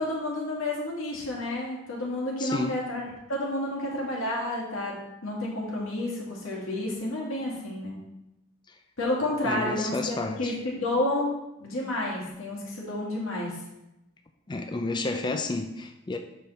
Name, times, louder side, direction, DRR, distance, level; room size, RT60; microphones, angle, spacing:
voice 1, 0.0-3.0 3.3-5.0 5.2-8.0 9.0-11.3 11.6-13.6, left 1 dB, 85° left, -3 dB, 2.3 m, -30 dB
voice 2, 2.4-2.8 9.4-10.6 14.5-16.2, left 2 dB, 20° left, 5 dB, 0.4 m, -31 dB
8.2 x 5.3 x 4.2 m, 0.91 s
head